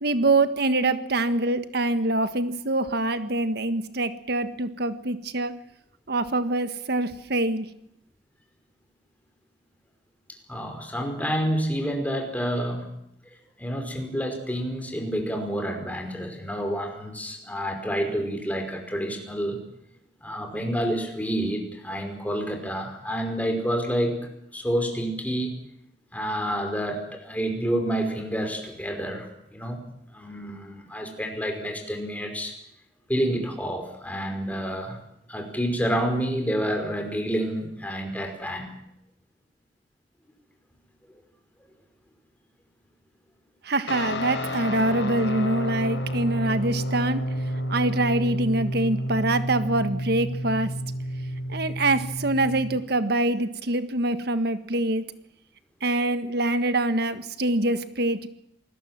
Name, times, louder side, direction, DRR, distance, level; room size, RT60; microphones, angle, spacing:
voice 1, 0.0-5.5 6.1-7.7 43.6-47.2 47.7-50.7 51.5-55.0 55.8-58.3, right 2 dB, 60° right, 11 dB, 1.5 m, -25 dB
voice 2, 10.5-12.9 13.6-19.6 20.2-24.2 24.5-25.6 26.1-29.8 30.1-32.6 33.1-35.0 35.3-38.7, equal, 10° left, 4 dB, 5.4 m, -28 dB
Guitar, 43.9-52.8, equal, 80° left, 5.4 m, -30 dB
27.5 x 20.5 x 7.6 m, 0.74 s
head